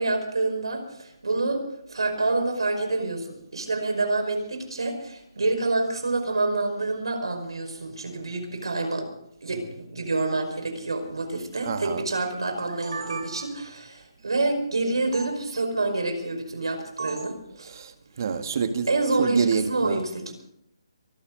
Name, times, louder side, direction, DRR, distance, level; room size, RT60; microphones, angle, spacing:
voice 1, 0.0-1.6 1.9-9.1 9.4-17.7 18.9-20.3, right 2 dB, 90° right, 5 dB, 5.2 m, -27 dB
voice 2, 11.6-12.0 17.7-18.9 19.2-20.0, right 6 dB, 50° right, 8 dB, 1.8 m, -27 dB
sound 1, 12.5-13.7 15.1-15.3 17.0-17.4, right 4 dB, 70° right, 2.8 m, -37 dB
23.5 x 13.0 x 4.0 m, 0.75 s
hypercardioid pair, 160°, 3 cm